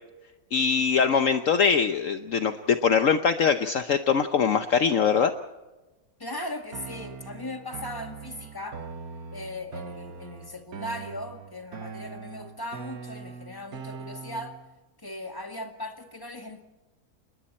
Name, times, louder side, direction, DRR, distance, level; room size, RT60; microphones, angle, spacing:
voice 1, 0.5-5.3, left 6 dB, 60° left, 8 dB, 1.2 m, -22 dB
voice 2, 6.2-8.8 9.3-14.6 15.0-16.6, left 1 dB, 15° left, 5 dB, 2.1 m, -38 dB
sound 1, 6.7-14.7, right 5 dB, 70° right, 1.8 m, -41 dB
29.5 x 21.0 x 4.3 m, 1.1 s
omnidirectional pair, 1.6 m